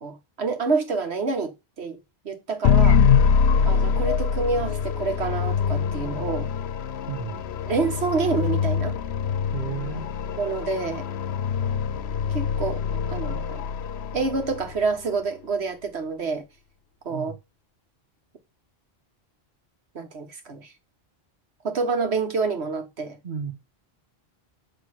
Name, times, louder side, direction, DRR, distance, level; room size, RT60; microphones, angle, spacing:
voice 1, 0.0-2.0 2.3-3.0 3.6-6.5 7.7-9.0 10.4-11.1 12.3-12.8 13.1-13.6 14.1-16.5 17.1-17.3 20.0-20.7 21.6-23.2, right 4 dB, 90° right, 1.6 m, -27 dB
sound 1, 2.6-14.8, left 7 dB, 85° left, 0.8 m, -24 dB
voice 2, 7.1-7.5 9.5-10.1 17.1-17.4 23.2-23.5, right 7 dB, 55° right, 1.2 m, -33 dB
7.6 x 3.3 x 6.3 m
omnidirectional pair, 1.1 m